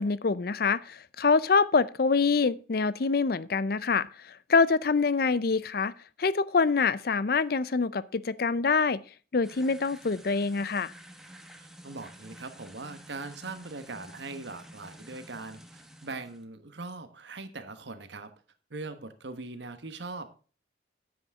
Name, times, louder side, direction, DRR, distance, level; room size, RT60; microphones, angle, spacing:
voice 1, 0.0-5.9 6.2-9.0 9.3-10.9, left 4 dB, 55° left, 0.5 m, -25 dB
sound 1, 9.4-16.4, equal, 5° right, 1.0 m, -50 dB
voice 2, 11.8-18.3 18.7-20.3, right 3 dB, 75° right, 1.3 m, -41 dB
9.5 x 9.2 x 3.6 m
head